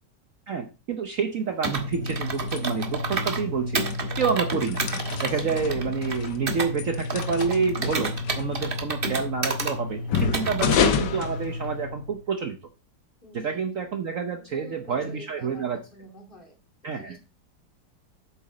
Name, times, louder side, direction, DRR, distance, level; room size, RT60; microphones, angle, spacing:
voice 1, 0.5-3.8 4.2-4.8 5.2-12.6 13.3-15.8 16.8-17.2, right 6 dB, 55° right, 6 dB, 1.1 m, -28 dB
Computer keyboard, 1.6-3.4 3.7-6.7 7.1-9.7 10.1-10.8, right 4 dB, 35° right, 1.4 m, -31 dB
sound 1, 1.7-12.2, left 5 dB, 70° left, 1.5 m, -29 dB
voice 2, 5.2-5.6 13.2-13.7 14.5-16.6 16.8-17.2, right 1 dB, 30° left, 2 dB, 2.8 m, -47 dB
8.1 x 7.2 x 4.9 m, 0.30 s
omnidirectional pair, 1.9 m